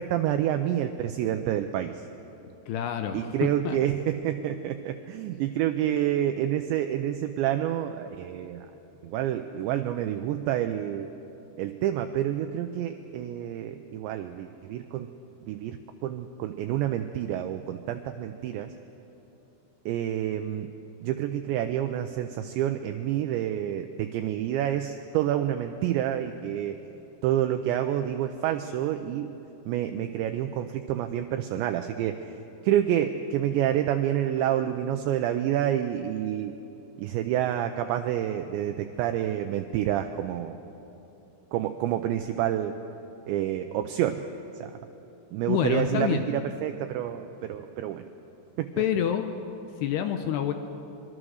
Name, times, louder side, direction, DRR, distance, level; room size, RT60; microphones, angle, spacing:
voice 1, 0.0-2.0 3.1-8.7 9.0-11.1 11.6-15.1 15.5-18.7 19.9-20.7 21.0-26.8 27.2-29.3 29.7-32.2 32.6-36.6 37.0-40.6 41.5-42.8 43.3-44.2 44.6-44.8 45.3-48.0 48.6-48.7, right 11 dB, 80° right, 7 dB, 2.7 m, -28 dB
voice 2, 2.7-3.8 45.5-46.3 48.8-49.2 49.8-50.5, left 9 dB, 80° left, 7 dB, 2.5 m, -27 dB
25.0 x 22.0 x 6.4 m, 2.9 s
omnidirectional pair, 5.7 m